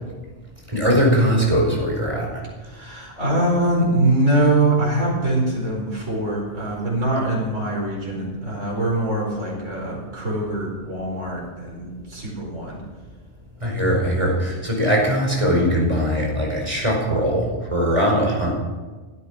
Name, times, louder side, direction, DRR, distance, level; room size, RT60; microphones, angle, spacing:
voice 1, 0.7-2.4 13.6-18.5, equal, 25° right, -1 dB, 5.1 m, -20 dB
voice 2, 2.6-12.8, right 1 dB, 85° right, -3 dB, 4.9 m, -23 dB
16.0 x 12.5 x 6.1 m, 1.3 s
omnidirectional pair, 1.3 m